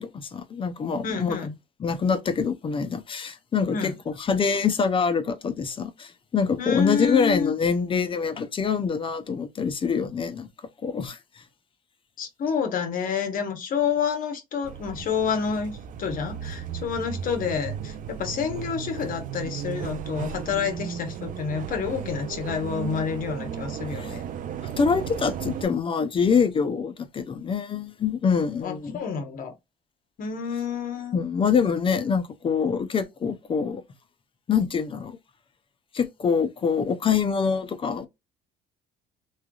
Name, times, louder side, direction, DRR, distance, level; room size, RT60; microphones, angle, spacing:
voice 1, 0.0-1.4 1.8-10.5 10.8-11.2 23.9-24.1 24.8-29.0 31.1-33.8 34.5-35.2 35.9-38.1, left 6 dB, 30° left, 0.5 m, -25 dB
voice 2, 1.0-1.5 3.7-3.9 6.6-7.5 12.2-24.2 28.6-29.5 30.2-31.2, left 6 dB, 55° left, 1.0 m, -29 dB
sound 1, 14.6-25.7, right 8 dB, 50° right, 0.4 m, -35 dB
3.2 x 2.3 x 2.3 m
cardioid pair, 110°, 17 cm